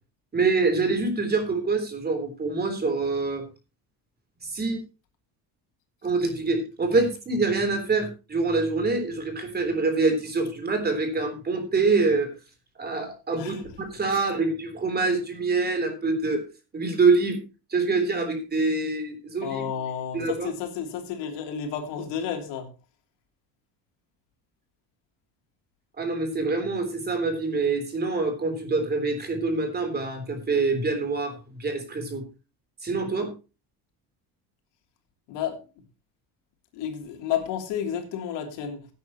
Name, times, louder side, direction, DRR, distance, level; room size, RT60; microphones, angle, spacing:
voice 1, 0.3-3.4 4.4-4.8 6.0-12.3 12.8-16.4 16.7-17.4 17.7-19.6 20.1-20.5 26.0-31.3 31.6-32.2 32.8-33.3, right 3 dB, 25° right, 3.5 m, -25 dB
voice 2, 19.4-22.7 35.3-35.6 36.7-38.9, left 8 dB, 85° left, 3.1 m, -31 dB
17.5 x 9.4 x 3.0 m
cardioid pair, 140°, 41 cm